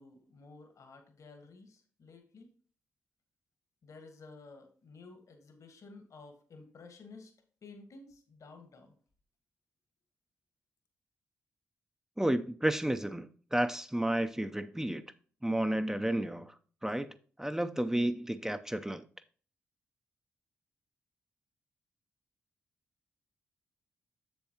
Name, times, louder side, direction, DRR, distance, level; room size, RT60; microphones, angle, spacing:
voice 1, 0.0-2.5 3.8-7.3 7.6-8.9, left 3 dB, 65° left, 1.5 m, -53 dB
voice 2, 12.2-15.0 15.4-16.5 16.8-17.1 17.4-19.0, right 1 dB, 10° right, 0.6 m, -31 dB
7.1 x 7.0 x 2.9 m
supercardioid pair, 45°, 6 cm